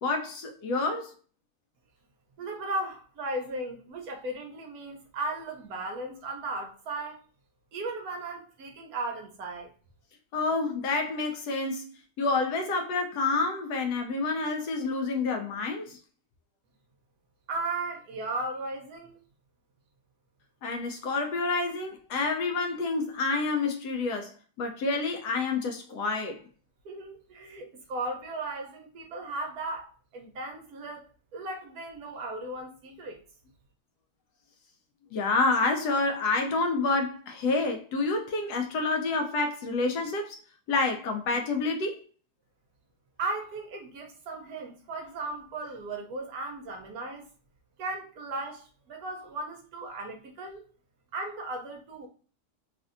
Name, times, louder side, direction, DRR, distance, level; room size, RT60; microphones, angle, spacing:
voice 1, 0.0-1.1 10.3-11.9 12.2-16.0 20.6-24.3 24.6-26.4 35.1-40.4 40.7-42.0, left 3 dB, 70° left, 1.1 m, -28 dB
voice 2, 2.4-7.2 7.7-9.7 17.5-19.2 26.8-31.1 31.3-33.2 43.2-47.2 47.8-50.6 51.1-52.1, right 2 dB, 65° right, 1.0 m, -36 dB
3.2 x 2.6 x 2.4 m
omnidirectional pair, 1.9 m